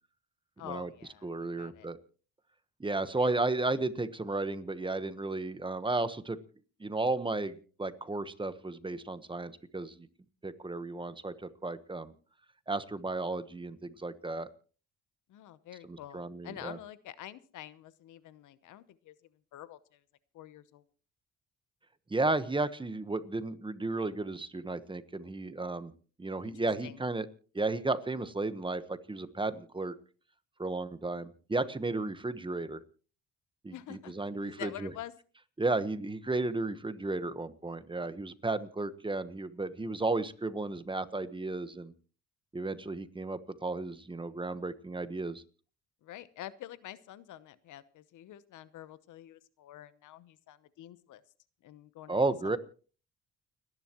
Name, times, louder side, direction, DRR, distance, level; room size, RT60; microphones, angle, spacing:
voice 1, 0.6-1.9 3.2-3.3 15.3-19.1 19.5-20.0 20.3-20.8 26.4-27.0 33.7-34.1 34.4-35.1 46.0-51.2 51.6-52.6, left 12 dB, 80° left, 15 dB, 0.9 m, -47 dB
voice 2, 1.2-2.0 2.8-6.4 6.8-10.1 10.4-12.1 12.7-14.5 15.9-16.8 22.1-25.9 26.2-27.3 27.5-29.9 30.6-32.8 33.6-34.9 35.6-41.9 42.5-45.4 52.1-52.6, right 2 dB, 15° right, 12 dB, 1.2 m, -33 dB
30.0 x 11.0 x 3.0 m, 0.40 s
cardioid pair, 90°, 30 cm